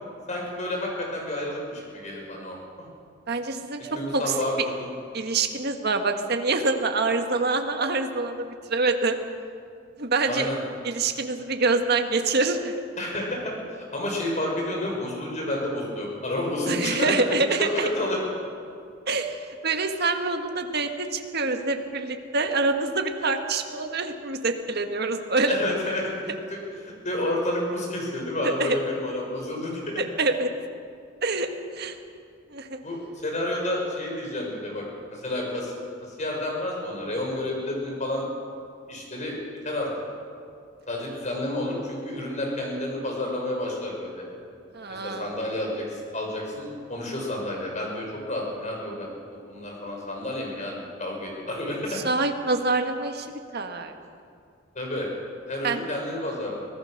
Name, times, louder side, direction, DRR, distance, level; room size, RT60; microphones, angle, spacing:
voice 1, 0.3-2.9 3.8-4.9 10.2-10.6 13.0-17.2 17.6-18.2 25.5-26.1 26.5-30.0 32.8-34.8 35.1-35.7 36.2-38.2 38.9-39.3 39.6-39.9 40.9-44.2 44.9-50.7 51.0-52.0 54.7-55.1 55.5-56.6, left 1 dB, 40° left, -1 dB, 6.2 m, -30 dB
voice 2, 3.3-3.8 4.1-4.3 5.1-9.2 10.0-10.5 10.8-12.7 16.7-17.9 19.1-19.4 19.6-25.6 28.4-28.8 30.0-30.5 31.2-31.5 31.7-32.0 32.5-32.8 44.7-45.3 51.9-53.9 55.6-55.8, right 3 dB, 55° right, 5 dB, 1.6 m, -26 dB
25.0 x 18.0 x 6.6 m, 2.3 s
head